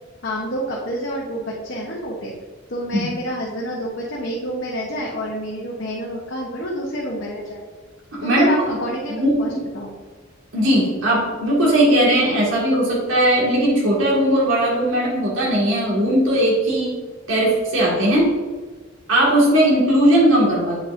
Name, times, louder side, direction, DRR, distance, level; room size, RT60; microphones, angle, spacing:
voice 1, 0.2-2.3 2.7-7.6 8.2-9.9, equal, 60° left, -4 dB, 0.9 m, -28 dB
voice 2, 8.1-8.6 9.1-9.6 10.5-17.0 17.3-18.3 19.1-20.8, right 1 dB, 80° right, -4 dB, 1.9 m, -18 dB
7.8 x 5.2 x 2.6 m, 1.4 s
head